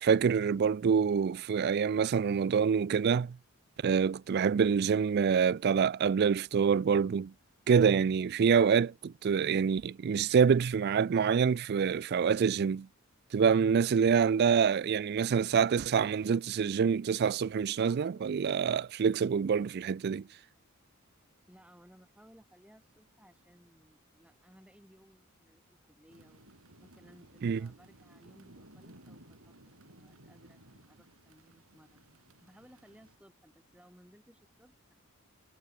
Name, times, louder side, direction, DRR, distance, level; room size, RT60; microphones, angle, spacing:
voice 1, 0.0-3.4 3.8-7.3 7.7-12.9 13.3-20.2 27.4-27.6, right 6 dB, 45° right, 0.3 m, -26 dB
voice 2, 21.5-26.4 26.8-29.5 29.8-34.9, equal, 5° right, 3.7 m, -60 dB
sound 1, 26.1-33.2, right 1 dB, 70° right, 6.1 m, -58 dB
head